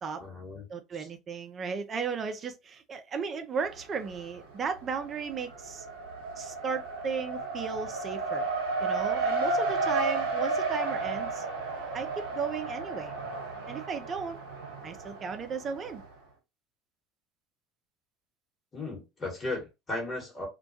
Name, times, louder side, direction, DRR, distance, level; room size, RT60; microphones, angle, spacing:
voice 1, 0.2-0.6 0.9-1.1 18.7-20.5, left 2 dB, 25° left, 1.2 m, -36 dB
voice 2, 0.7-5.9 6.4-8.5 8.8-11.4 11.9-13.1 13.7-14.4 14.8-16.0, right 5 dB, 35° right, 0.4 m, -35 dB
Race car auto racing, 3.6-4.4 4.7-16.0, right 3 dB, 65° right, 0.7 m, -33 dB
2.2 x 2.2 x 2.6 m
figure-of-eight pair, 65°, 0 cm